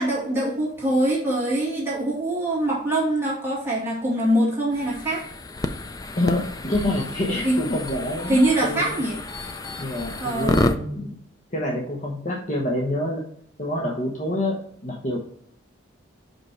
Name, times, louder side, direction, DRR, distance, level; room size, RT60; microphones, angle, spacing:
voice 1, 0.0-5.2 7.4-7.6 8.3-9.2 10.2-10.7, right 1 dB, 10° right, -6 dB, 2.3 m, -23 dB
sound 1, 4.7-10.8, left 2 dB, 20° left, 0.4 m, -30 dB
voice 2, 6.2-9.0 9.8-11.2 11.5-13.2 13.6-14.6 14.8-15.2, left 1 dB, 35° left, -2 dB, 1.0 m, -27 dB
5.4 x 5.2 x 4.3 m, 0.64 s
head